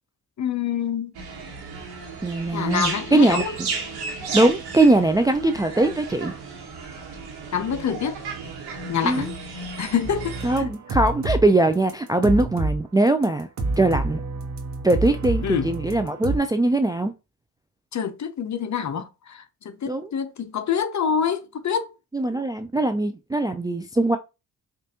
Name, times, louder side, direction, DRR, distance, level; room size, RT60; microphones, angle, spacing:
voice 1, 0.4-1.1 2.5-3.5 7.5-8.2 8.9-9.3 9.8-10.7 15.4-15.7 17.9-21.9, left 7 dB, 45° left, 0.7 m, -26 dB
sound 1, 1.1-10.6, right 4 dB, 90° right, 1.3 m, -34 dB
voice 2, 2.2-3.4 4.3-6.3 9.0-9.3 10.4-13.5 13.8-14.2 14.8-17.1 19.9-20.1 22.1-24.2, right 2 dB, 10° right, 0.3 m, -21 dB
sound 2, 10.0-11.5 11.7-12.8 13.2-13.3 13.6-16.4, right 2 dB, 45° right, 0.9 m, -28 dB
5.3 x 2.5 x 2.8 m
cardioid pair, 65°, 38 cm